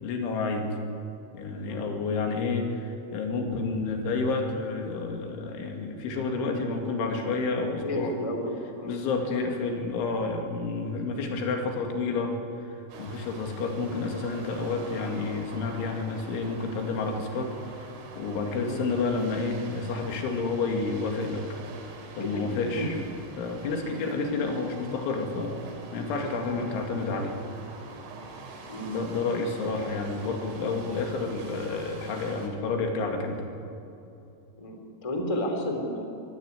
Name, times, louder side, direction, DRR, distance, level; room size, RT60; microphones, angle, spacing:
voice 1, 0.0-0.8 1.3-8.2 8.8-17.9 18.2-21.6 22.2-23.0 23.4-25.5 25.9-27.4 28.9-33.5, left 3 dB, 85° left, 3 dB, 4.7 m, -30 dB
voice 2, 7.8-8.9 18.5-18.7 22.1-22.4 22.7-22.9 28.7-28.9 34.6-36.0, equal, 10° left, 3 dB, 2.0 m, -32 dB
sound 1, 12.9-32.5, right 3 dB, 90° right, 5.4 m, -45 dB
24.5 x 15.0 x 9.7 m, 2.9 s
omnidirectional pair, 5.4 m